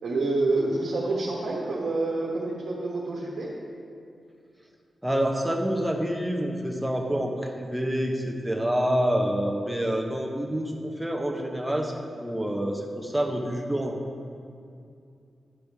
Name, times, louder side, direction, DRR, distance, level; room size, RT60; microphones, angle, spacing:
voice 1, 0.0-3.5, right 2 dB, 85° right, -6 dB, 1.1 m, -27 dB
voice 2, 5.0-14.0, equal, 5° right, 1 dB, 0.9 m, -27 dB
11.0 x 5.0 x 3.5 m, 2.5 s
cardioid pair, 80°, 0 cm